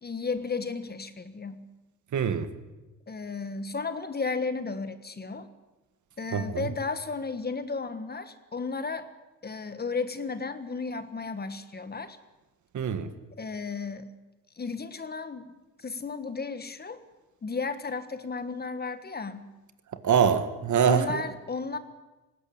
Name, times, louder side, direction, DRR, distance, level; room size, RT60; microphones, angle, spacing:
voice 1, 0.0-1.6 3.1-5.5 6.2-9.1 9.4-12.2 13.4-14.1 14.6-15.5 15.8-17.0 17.4-19.4 20.8-21.8, left 4 dB, 25° left, 11 dB, 1.4 m, -34 dB
voice 2, 2.1-2.5 6.3-6.7 12.7-13.1 20.0-21.2, right 7 dB, 55° right, 10 dB, 1.7 m, -24 dB
19.0 x 16.5 x 8.7 m, 1.1 s
cardioid pair, 105°, 35 cm